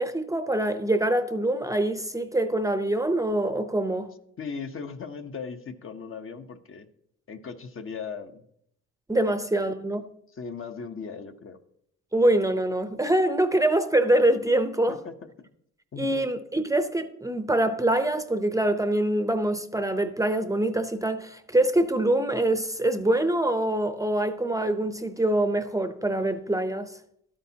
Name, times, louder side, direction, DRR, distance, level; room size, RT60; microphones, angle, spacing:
voice 1, 0.0-4.1 9.1-10.0 12.1-15.0 16.0-26.9, right 1 dB, 10° right, 0.7 m, -24 dB
voice 2, 4.4-6.9 7.3-8.5 9.5-9.7 10.3-11.6 14.9-15.5 15.9-16.3, left 5 dB, 45° left, 0.9 m, -38 dB
12.5 x 8.7 x 2.8 m
cardioid pair, 90°, 30 cm